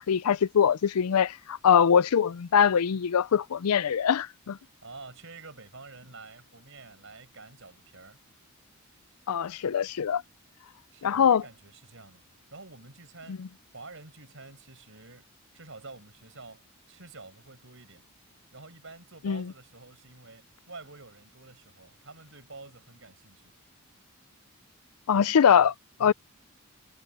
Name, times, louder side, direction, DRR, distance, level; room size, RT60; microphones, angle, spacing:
voice 1, 0.1-4.6 9.3-10.2 11.0-11.4 13.4-13.5 19.2-19.4 25.1-25.7 26.0-26.1, left 7 dB, 90° left, 0.4 m, -23 dB
voice 2, 4.8-8.2 10.9-12.2 12.5-13.4 13.7-18.0 18.5-23.5, right 3 dB, 60° right, 5.6 m, -48 dB
head